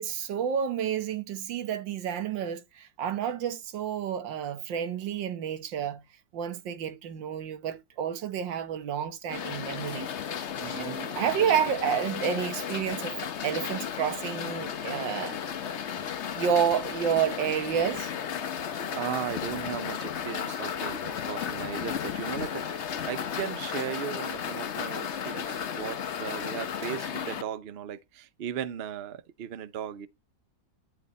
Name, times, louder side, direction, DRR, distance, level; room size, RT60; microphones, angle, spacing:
voice 1, 0.0-6.0 6.3-10.1 10.4-15.4 16.4-18.1, right 8 dB, 80° right, 1.8 m, -30 dB
sound 1, 9.3-27.4, left 8 dB, 50° left, 0.9 m, -34 dB
voice 2, 10.6-11.0 18.9-30.1, right 9 dB, 60° right, 0.6 m, -37 dB
11.0 x 4.4 x 4.2 m
omnidirectional pair, 2.0 m